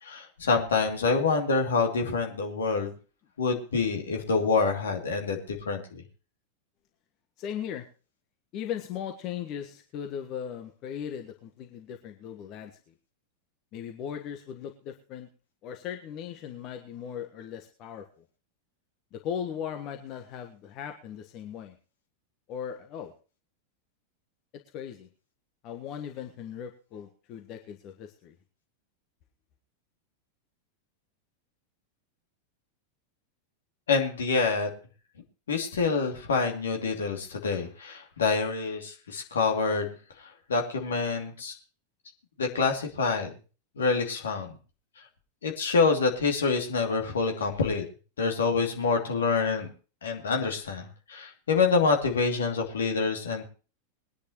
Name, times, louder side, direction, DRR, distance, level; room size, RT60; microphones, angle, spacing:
voice 1, 0.0-2.9 3.4-6.0 33.9-34.7 35.5-39.9 40.5-41.5 42.4-43.3 43.8-44.5 45.4-47.8 48.2-49.7 50.0-53.4, left 4 dB, 65° left, 3 dB, 2.7 m, -26 dB
voice 2, 7.4-7.9 8.5-12.8 13.7-15.3 15.6-18.1 19.1-21.7 22.5-23.1 24.7-25.1 25.6-28.3, left 8 dB, 40° left, 5 dB, 1.4 m, -38 dB
21.5 x 10.0 x 3.1 m, 0.35 s
figure-of-eight pair, 90°, 0 cm